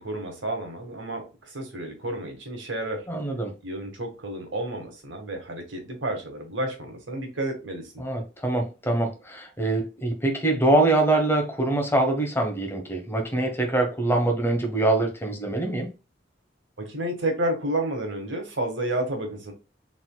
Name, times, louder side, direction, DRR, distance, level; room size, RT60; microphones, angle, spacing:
voice 1, 0.0-3.1 3.6-8.0 16.8-19.5, right 1 dB, 90° right, 1.6 m, -31 dB
voice 2, 3.1-3.5 8.0-15.9, right 2 dB, 15° left, 1.0 m, -24 dB
4.2 x 4.1 x 2.3 m
head